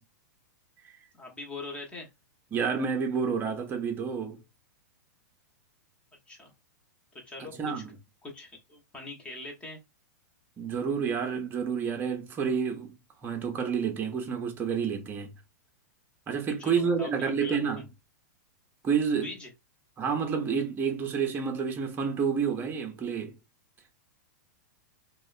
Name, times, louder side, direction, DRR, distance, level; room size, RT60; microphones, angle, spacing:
voice 1, 1.2-2.1 6.3-6.5 7.2-7.8 8.2-9.8 16.6-17.8 19.2-19.5, left 3 dB, 10° left, 0.9 m, -42 dB
voice 2, 2.5-4.4 7.4-7.9 10.6-13.0 13.2-15.3 16.3-17.9 18.8-19.3 20.0-23.4, right 6 dB, 20° right, 0.6 m, -29 dB
2.9 x 2.1 x 2.4 m
hypercardioid pair, 130°, 9 cm